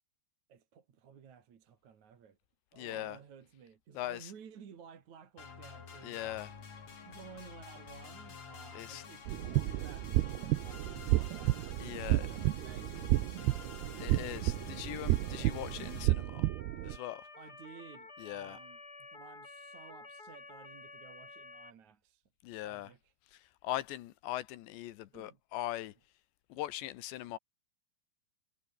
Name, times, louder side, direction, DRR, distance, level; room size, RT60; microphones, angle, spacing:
voice 1, 0.5-2.4 2.7-6.4 7.0-13.8 17.4-22.2 22.5-23.1 25.1-25.4, right 7 dB, 45° right, 3.3 m, -55 dB
voice 2, 2.7-3.2 3.9-4.3 6.0-6.5 8.7-9.0 11.8-12.3 14.0-16.5 16.8-17.3 18.2-18.6 22.4-22.9 23.3-25.9 26.5-27.4, left 15 dB, 80° left, 3.3 m, -40 dB
sound 1, 5.4-16.1, left 5 dB, 40° left, 4.4 m, -49 dB
sound 2, 9.3-17.0, right 18 dB, 75° right, 2.6 m, -32 dB
Motor vehicle (road) / Siren, 14.2-21.7, left 3 dB, 20° left, 4.6 m, -52 dB
omnidirectional pair, 5.1 m